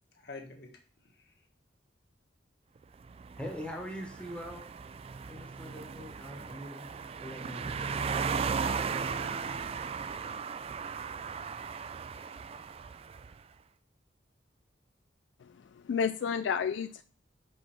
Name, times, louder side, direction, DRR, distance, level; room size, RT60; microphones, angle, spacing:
voice 1, 0.1-0.7 1.0-1.5 8.7-9.8, left 3 dB, 60° left, 1.5 m, -50 dB
sound 1, 3.0-13.3, right 5 dB, 30° right, 0.3 m, -36 dB
voice 2, 3.4-4.6 5.3-6.9 7.2-7.9, equal, 5° left, 1.1 m, -42 dB
voice 3, 15.4-17.0, left 7 dB, 75° left, 0.3 m, -31 dB
6.0 x 5.5 x 4.3 m
head